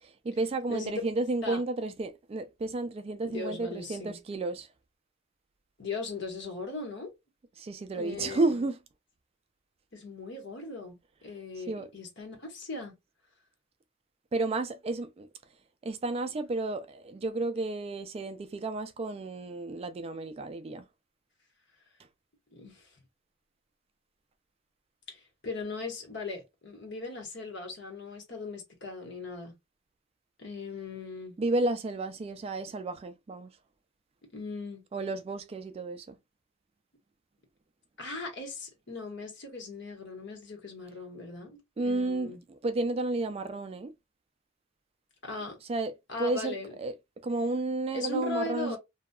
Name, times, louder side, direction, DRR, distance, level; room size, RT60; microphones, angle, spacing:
voice 1, 0.0-4.7 7.6-8.8 11.7-11.9 14.3-15.3 15.8-20.8 31.4-33.5 34.9-36.2 41.8-43.9 45.7-45.9 46.2-46.9 47.2-48.8, right 2 dB, 30° right, 0.3 m, -32 dB
voice 2, 0.7-1.0 1.4-1.6 3.2-4.2 5.8-7.1 7.9-8.6 9.9-12.9 22.5-22.9 25.1-29.5 30.4-31.4 34.3-34.8 38.0-42.4 45.2-45.6 46.1-46.7 47.9-48.8, left 3 dB, 65° left, 1.1 m, -39 dB
2.8 x 2.3 x 2.2 m
head